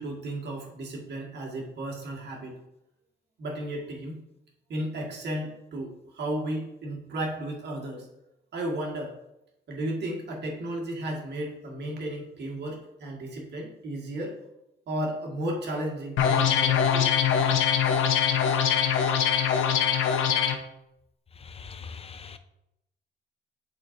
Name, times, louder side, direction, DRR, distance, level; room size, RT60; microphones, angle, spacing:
voice 1, 0.0-2.5 3.4-4.2 4.7-8.1 8.5-9.2 9.7-14.3 14.9-17.1, right 1 dB, 60° right, 1.8 m, -34 dB
sound 1, 16.2-20.6, left 8 dB, 80° left, 0.9 m, -23 dB
voice 2, 21.4-22.4, left 6 dB, 30° left, 0.7 m, -42 dB
10.5 x 4.1 x 2.6 m
cardioid pair, 90°, 20 cm